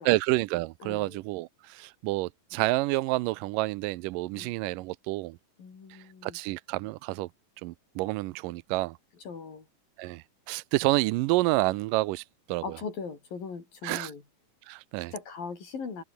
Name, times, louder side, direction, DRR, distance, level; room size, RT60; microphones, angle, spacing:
voice 1, 0.1-5.4 5.9-7.3 7.6-9.0 10.0-12.6 13.8-14.1 14.7-15.1, right 20 dB, 80° right, 2.1 m, -29 dB
voice 2, 0.8-1.2 4.3-4.5 5.6-6.4 9.2-9.6 12.6-14.2 15.1-16.0, left 5 dB, 75° left, 6.7 m, -39 dB
omnidirectional pair, 4.1 m